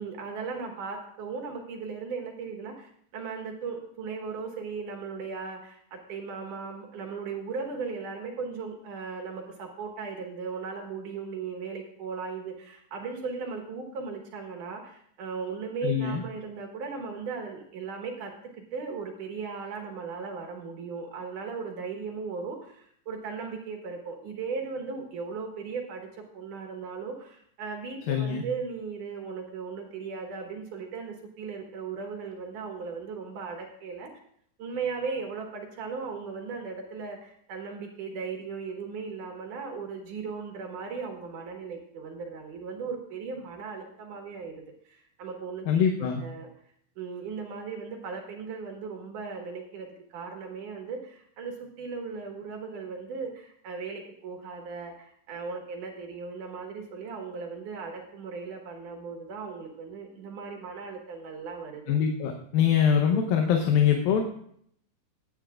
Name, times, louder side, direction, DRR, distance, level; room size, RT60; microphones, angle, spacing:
voice 1, 0.0-34.1 34.6-44.5 44.8-46.5 47.0-61.8, right 5 dB, 65° right, 2 dB, 2.7 m, -37 dB
voice 2, 15.8-16.2 28.1-28.4 45.7-46.2 61.9-64.2, left 8 dB, 80° left, 3 dB, 2.7 m, -23 dB
16.5 x 10.5 x 2.4 m, 0.65 s
omnidirectional pair, 4.3 m